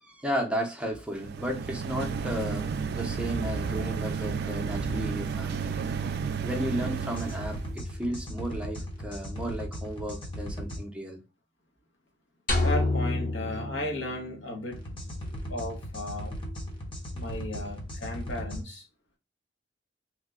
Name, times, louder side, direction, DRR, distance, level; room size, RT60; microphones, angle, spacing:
voice 1, 0.0-5.7 6.4-11.2, equal, 5° right, 0.6 m, -34 dB
sound 1, 1.1-7.7, right 5 dB, 60° right, 0.3 m, -32 dB
sound 2, 6.9-10.8 14.7-18.6, equal, 30° left, 0.8 m, -37 dB
sound 3, 12.5-14.8, left 2 dB, 50° left, 1.0 m, -28 dB
voice 2, 12.6-14.8 15.5-16.3 17.1-18.8, left 1 dB, 80° left, 1.0 m, -35 dB
2.9 x 2.2 x 3.6 m
head